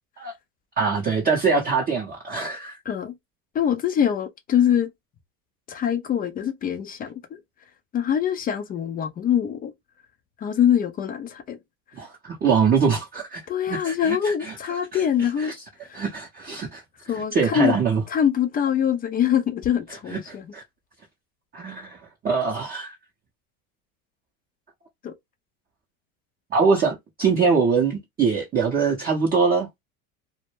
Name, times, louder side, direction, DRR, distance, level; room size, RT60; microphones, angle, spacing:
voice 1, 0.8-2.8 12.0-13.4 13.7-14.5 15.9-16.8 17.3-18.0 20.1-20.2 20.5-20.6 21.5-22.0 22.2-22.9 26.5-29.7, right 5 dB, 20° right, 0.6 m, -23 dB
voice 2, 3.5-4.9 5.7-7.4 7.9-9.7 10.4-11.6 13.5-15.5 15.8-16.0 17.1-17.8 18.1-20.5 25.0-25.1, left 9 dB, 25° left, 0.4 m, -24 dB
2.1 x 2.1 x 3.0 m
supercardioid pair, 105°, 42 cm